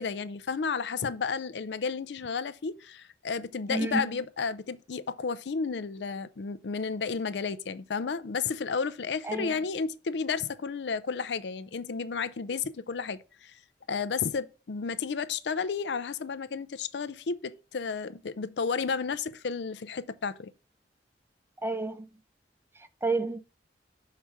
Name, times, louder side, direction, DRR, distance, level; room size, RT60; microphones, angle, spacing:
voice 1, 0.0-13.5 13.9-20.5, left 5 dB, 75° left, 0.5 m, -32 dB
voice 2, 3.7-4.1 9.2-9.5 21.6-22.1 23.0-23.4, right 3 dB, 15° right, 0.4 m, -30 dB
5.9 x 4.8 x 5.5 m
head